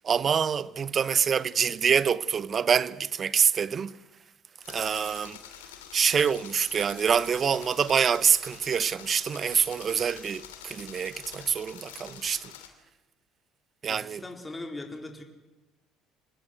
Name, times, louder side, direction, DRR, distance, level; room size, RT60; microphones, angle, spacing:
voice 1, 0.0-3.9 4.7-5.4 5.9-12.5 13.8-14.2, right 7 dB, 45° right, 1.0 m, -26 dB
sound 1, 4.6-12.7, left 10 dB, 85° left, 2.9 m, -47 dB
voice 2, 13.9-15.2, left 2 dB, 15° left, 4.5 m, -40 dB
26.5 x 19.5 x 8.1 m
hypercardioid pair, 60°, 0 cm